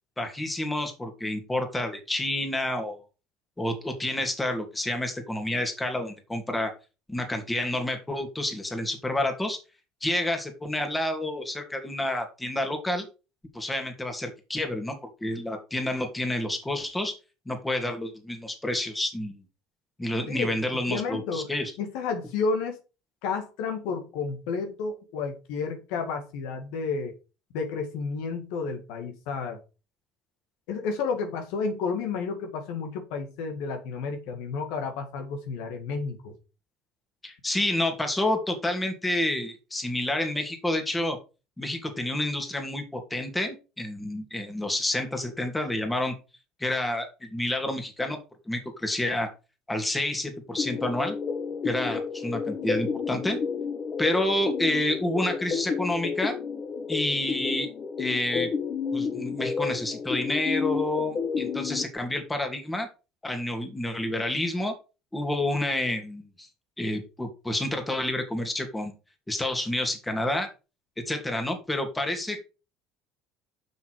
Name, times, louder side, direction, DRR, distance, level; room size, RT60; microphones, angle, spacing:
voice 1, 0.2-3.0 3.6-6.7 7.1-9.6 10.0-13.1 13.5-17.2 17.5-19.4 20.0-21.7 37.2-41.2 41.6-46.1 46.6-48.2 48.5-49.3 49.7-51.2 51.6-53.4 54.0-56.4 56.9-57.7 58.0-58.5 58.9-62.9 63.2-64.7 65.1-66.5 66.8-68.9 69.3-70.5 71.1-72.4, left 1 dB, 15° left, 5 dB, 2.7 m, -29 dB
voice 2, 20.3-21.5 21.8-22.8 23.2-27.2 27.5-29.6 30.7-36.3, left 4 dB, 75° left, 6 dB, 1.8 m, -31 dB
sound 1, 50.6-61.8, left 5 dB, 40° left, 1.4 m, -31 dB
6.8 x 6.4 x 4.9 m, 0.31 s
supercardioid pair, 80°, 0 cm